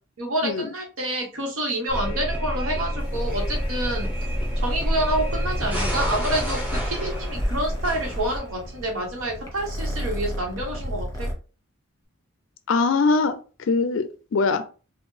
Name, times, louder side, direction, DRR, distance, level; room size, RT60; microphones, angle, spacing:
voice 1, 0.2-4.1 4.6-11.3, right 1 dB, 80° right, 1 dB, 1.3 m, -28 dB
sound 1, 1.9-8.7, equal, 10° right, 0.9 m, -29 dB
sound 2, 3.0-8.4, equal, 25° right, 1.6 m, -31 dB
Purr, 5.5-11.3, equal, 15° left, 1.2 m, -35 dB
voice 2, 12.7-14.6, left 4 dB, 65° left, 10 dB, 0.4 m, -22 dB
4.4 x 2.5 x 3.2 m, 0.36 s
head